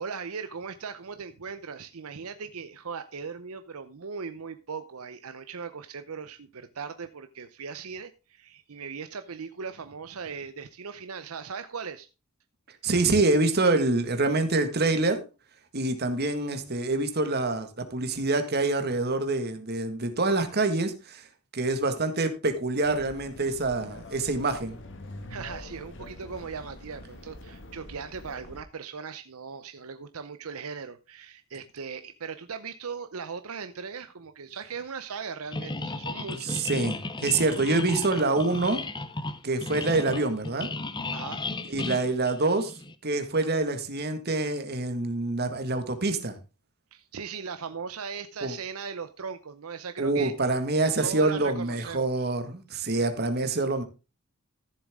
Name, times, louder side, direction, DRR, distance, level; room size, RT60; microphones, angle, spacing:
voice 1, 0.0-12.1 25.3-36.6 41.1-41.6 46.9-50.3 51.0-52.3 52.8-52.9, right 5 dB, 75° right, 10 dB, 0.7 m, -38 dB
voice 2, 12.8-15.2 15.7-21.3 21.5-24.8 36.3-38.8 39.4-40.7 41.7-42.7 43.0-46.4 48.4-48.5 50.0-53.8, right 2 dB, 45° right, 8 dB, 1.7 m, -26 dB
sound 1, 22.8-28.6, left 1 dB, 55° left, 1.5 m, -44 dB
sound 2, 35.5-42.9, left 3 dB, 20° left, 0.8 m, -35 dB
14.0 x 7.3 x 3.6 m, 0.31 s
head